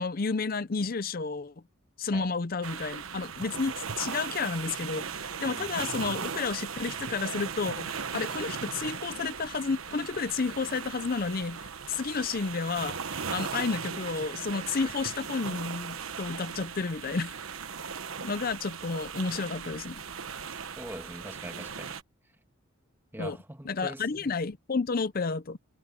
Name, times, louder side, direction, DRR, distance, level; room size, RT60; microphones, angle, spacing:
voice 1, 0.0-1.5 2.0-17.3 18.2-20.0 23.2-23.4 23.6-25.6, left 4 dB, 45° left, 0.6 m, -31 dB
sound 1, 2.6-22.0, right 6 dB, 85° right, 1.1 m, -38 dB
voice 2, 20.8-22.0 23.1-24.3, right 1 dB, 10° right, 1.5 m, -43 dB
head